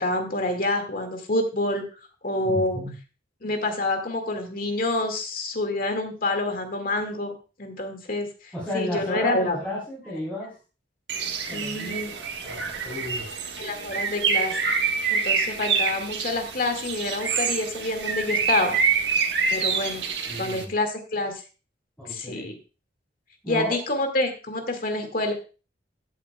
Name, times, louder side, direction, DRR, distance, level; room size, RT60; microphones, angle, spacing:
voice 1, 0.0-1.8 2.2-2.8 3.4-9.6 11.5-12.1 13.6-14.6 15.1-18.8 19.5-20.0 20.4-21.4 22.1-22.6 23.5-25.3, left 2 dB, 50° left, 5 dB, 2.0 m, -27 dB
voice 2, 2.4-2.9 8.5-10.5 11.5-13.3 20.3-20.7 22.0-22.5 23.4-23.8, left 1 dB, 10° left, -7 dB, 3.8 m, -33 dB
Bird, 11.1-20.6, right 5 dB, 65° right, 1.3 m, -26 dB
14.0 x 8.1 x 2.3 m, 0.33 s
head